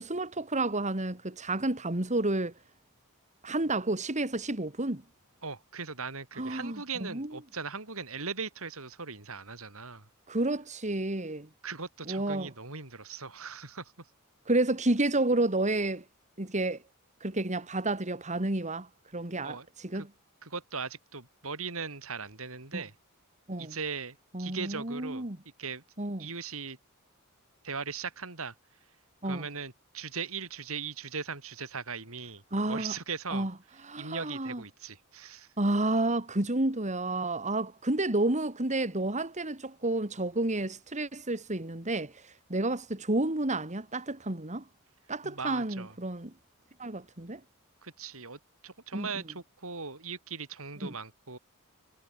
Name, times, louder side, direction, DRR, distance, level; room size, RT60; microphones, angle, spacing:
voice 1, 0.0-2.5 3.4-5.0 6.4-7.4 10.3-11.5 12.1-12.5 14.5-16.0 16.4-16.8 17.2-18.9 19.1-20.1 22.7-22.8 23.5-23.8 24.3-25.4 26.0-26.3 29.2-29.5 32.5-32.9 33.3-33.5 33.8-34.6 35.6-44.6 45.1-46.3 46.8-47.4 48.9-49.2 50.8-50.9, right 2 dB, 35° right, 2.7 m, -30 dB
voice 2, 5.4-10.1 11.6-13.9 19.4-19.7 19.9-20.1 20.4-22.9 23.6-25.2 25.6-25.8 26.2-26.8 27.6-28.5 29.2-32.4 32.7-33.5 34.0-35.5 45.2-45.9 47.8-51.4, right 5 dB, 70° right, 4.3 m, -39 dB
head